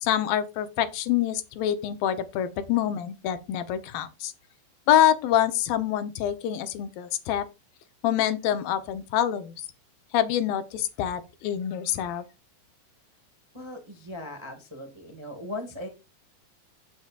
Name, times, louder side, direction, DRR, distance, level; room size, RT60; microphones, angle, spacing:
voice 1, 0.0-4.3 4.9-7.5 8.0-9.5 10.1-12.3, left 11 dB, 90° left, 2.8 m, -26 dB
voice 2, 13.5-15.9, left 1 dB, 15° right, 0.9 m, -38 dB
16.0 x 6.8 x 2.5 m
omnidirectional pair, 4.0 m